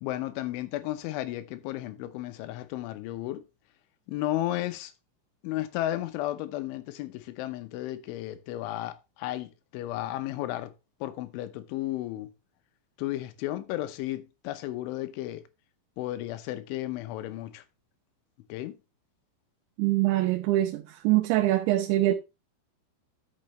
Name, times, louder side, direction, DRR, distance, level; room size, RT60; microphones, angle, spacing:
voice 1, 0.0-3.4 4.1-4.9 5.4-10.7 11.0-12.3 13.0-15.4 16.0-17.6 18.5-18.7, left 15 dB, 85° left, 3.3 m, -33 dB
voice 2, 19.8-22.1, right 15 dB, 80° right, 3.0 m, -24 dB
12.0 x 6.7 x 3.1 m
omnidirectional pair, 5.4 m